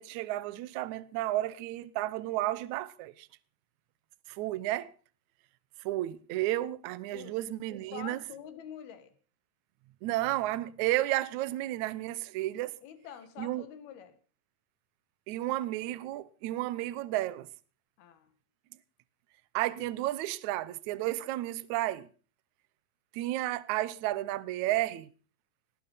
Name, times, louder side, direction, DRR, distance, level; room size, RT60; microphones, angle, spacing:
voice 1, 0.0-3.3 4.3-4.9 5.9-8.2 10.0-12.7 13.4-13.6 15.3-17.5 19.5-22.1 23.1-25.1, right 16 dB, 70° right, 1.9 m, -32 dB
voice 2, 7.9-9.1 12.8-14.1 18.0-18.3, left 8 dB, 90° left, 3.7 m, -46 dB
19.5 x 12.0 x 5.6 m
omnidirectional pair, 4.3 m